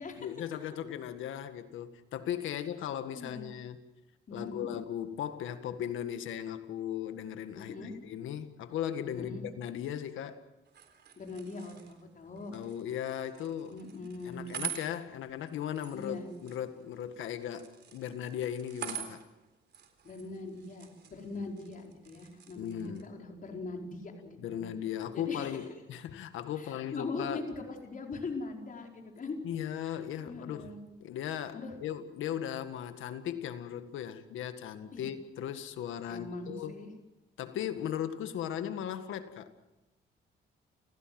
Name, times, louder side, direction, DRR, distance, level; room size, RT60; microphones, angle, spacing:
voice 1, 0.2-3.8 4.3-10.4 12.5-13.8 14.3-19.2 22.6-23.1 24.4-27.4 29.4-30.8 31.0-36.9 37.4-39.5, left 10 dB, 80° left, 1.8 m, -37 dB
voice 2, 3.1-3.5 4.3-4.7 7.6-7.9 9.1-9.4 11.2-12.5 13.7-14.6 15.9-16.3 20.0-24.6 25.1-25.6 26.6-29.4 29.8-29.9 30.2-30.8 31.5-31.7 34.9-35.0 36.1-36.9, left 3 dB, 45° left, 4.9 m, -41 dB
sound 1, 10.7-23.1, right 9 dB, 60° right, 3.9 m, -47 dB
29.5 x 16.5 x 7.8 m
cardioid pair, 90°, 20 cm